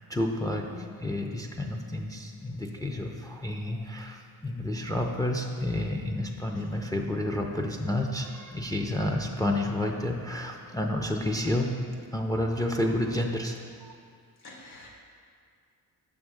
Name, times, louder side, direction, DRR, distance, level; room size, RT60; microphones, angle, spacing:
voice 1, 0.1-11.7 12.1-14.0, left 1 dB, 10° left, 1 dB, 0.4 m, -30 dB
voice 2, 14.4-14.9, left 4 dB, 80° left, -2 dB, 1.4 m, -43 dB
6.5 x 3.6 x 6.2 m, 2.2 s
cardioid pair, 105°, 38 cm